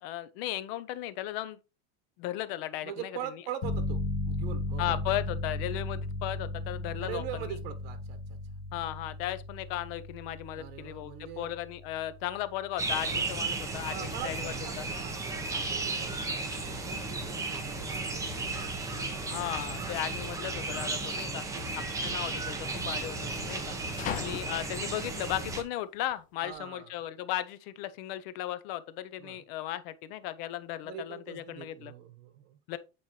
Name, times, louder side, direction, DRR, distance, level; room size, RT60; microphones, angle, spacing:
voice 1, 0.0-1.6 2.2-3.4 4.8-7.5 8.7-14.8 19.2-21.4 21.8-23.8 24.1-31.9 32.7-32.8, left 13 dB, 70° left, 0.7 m, -36 dB
voice 2, 2.8-5.0 7.0-8.4 10.5-11.5 13.9-18.6 19.9-20.1 21.4-21.7 23.6-24.3 26.4-26.9 29.2-29.4 30.8-32.6, right 10 dB, 75° right, 1.2 m, -43 dB
sound 1, 3.6-14.1, left 2 dB, 45° left, 1.3 m, -36 dB
sound 2, 12.8-25.6, right 3 dB, 10° right, 0.9 m, -34 dB
sound 3, 16.9-26.6, left 9 dB, 25° left, 0.5 m, -45 dB
8.5 x 4.3 x 3.1 m
cardioid pair, 160°, 30 cm